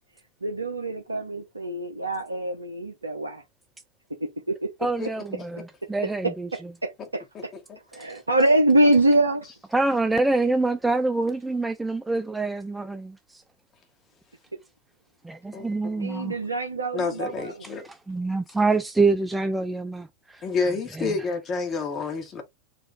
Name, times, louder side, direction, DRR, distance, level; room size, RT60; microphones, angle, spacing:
voice 1, 0.4-3.4 4.2-4.7 5.0-5.1 6.5-7.2 7.9-9.5 16.0-17.5, right 1 dB, 80° right, 0.6 m, -24 dB
voice 2, 4.8-6.7 7.9-8.2 9.7-13.4 15.2-16.3 17.9-20.4 20.9-21.2, right 3 dB, 5° right, 0.3 m, -26 dB
voice 3, 15.5-16.0 16.9-17.9 20.4-22.4, left 4 dB, 25° left, 1.1 m, -29 dB
4.3 x 2.4 x 4.2 m
figure-of-eight pair, 90°, 0 cm